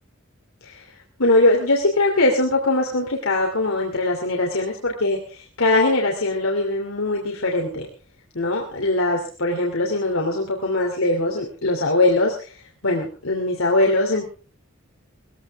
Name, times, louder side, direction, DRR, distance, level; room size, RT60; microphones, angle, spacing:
voice 1, 1.2-7.9 8.3-14.2, left 2 dB, 80° left, -1 dB, 2.9 m, -21 dB
19.5 x 16.0 x 3.6 m, 0.37 s
head